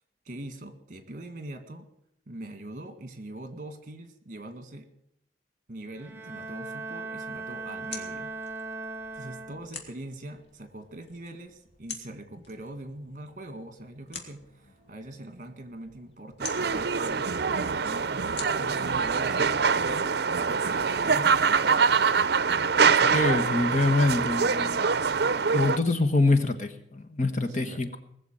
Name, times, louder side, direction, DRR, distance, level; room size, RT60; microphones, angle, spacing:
voice 1, 0.3-1.9 2.3-4.9 5.7-8.3 9.1-22.1 27.4-27.9, right 1 dB, 45° right, 8 dB, 1.9 m, -42 dB
Bowed string instrument, 5.9-10.0, right 3 dB, 10° right, 1.8 m, -38 dB
sound 1, 7.2-20.0, left 4 dB, 75° left, 3.0 m, -47 dB
sound 2, 16.4-25.8, right 5 dB, 60° right, 0.6 m, -24 dB
voice 2, 23.1-24.9 25.5-28.0, left 2 dB, 45° left, 7 dB, 1.4 m, -25 dB
20.0 x 7.1 x 9.1 m, 0.74 s
head